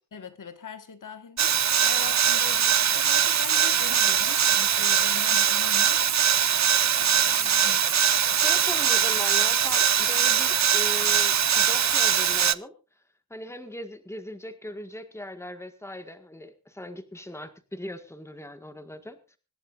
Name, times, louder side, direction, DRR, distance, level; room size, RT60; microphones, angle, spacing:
voice 1, 0.1-6.0 7.0-7.9, left 6 dB, 60° left, 1.6 m, -42 dB
sound 1, 1.4-12.5, right 8 dB, 50° right, 0.6 m, -22 dB
voice 2, 8.3-12.7 13.3-19.4, left 1 dB, 10° left, 1.7 m, -39 dB
25.5 x 11.5 x 2.6 m
wide cardioid pair, 120°, 35 cm